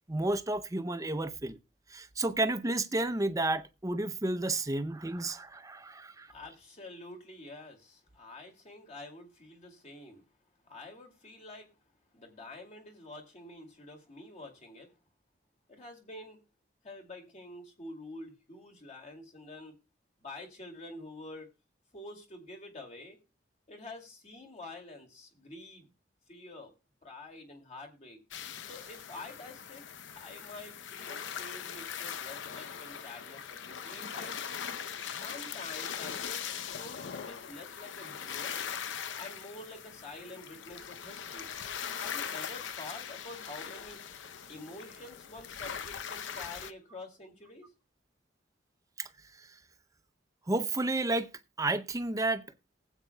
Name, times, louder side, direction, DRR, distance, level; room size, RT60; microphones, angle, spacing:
voice 1, 0.1-1.6 1.9-6.3 49.0-49.1 49.4-49.5 50.5-51.3 51.6-52.4, right 2 dB, 20° right, 0.6 m, -31 dB
voice 2, 6.3-10.3 10.6-11.7 12.1-14.9 15.7-16.4 16.8-19.8 20.2-21.5 21.9-23.2 23.7-25.9 26.3-26.7 27.0-28.2 28.6-29.8 30.1-34.4 35.2-38.6 39.1-41.5 42.0-44.0 44.5-47.7, left 2 dB, 40° left, 2.3 m, -47 dB
sound 1, 28.3-46.7, left 7 dB, 80° left, 0.7 m, -41 dB
19.5 x 8.2 x 2.2 m
head